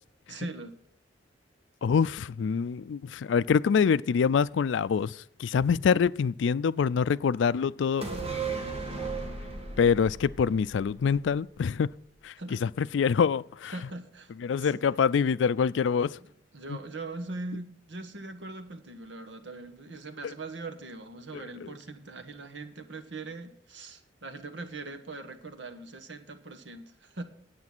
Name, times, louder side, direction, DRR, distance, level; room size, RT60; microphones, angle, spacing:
voice 1, 0.3-0.8 12.4-12.6 13.7-14.3 14.6-14.8 16.2-27.2, right 2 dB, 80° right, 1.2 m, -41 dB
voice 2, 1.8-8.0 9.8-11.9 12.2-13.7 14.4-16.2 16.7-16.8 20.2-20.3 21.3-21.4, left 6 dB, 85° left, 0.4 m, -25 dB
sound 1, 8.0-11.6 11.9-12.0, right 4 dB, 35° right, 2.2 m, -36 dB
9.7 x 8.6 x 6.0 m
head